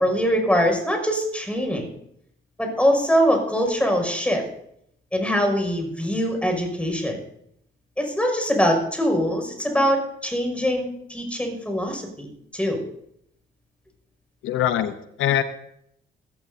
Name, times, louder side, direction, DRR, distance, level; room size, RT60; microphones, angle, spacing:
voice 1, 0.0-1.9 2.6-4.4 5.1-7.2 8.0-12.3 12.5-12.8, equal, 5° left, 2 dB, 6.1 m, -23 dB
voice 2, 14.4-15.4, left 11 dB, 85° left, 11 dB, 0.9 m, -23 dB
21.0 x 15.5 x 2.8 m, 0.72 s
cardioid pair, 90°, 20 cm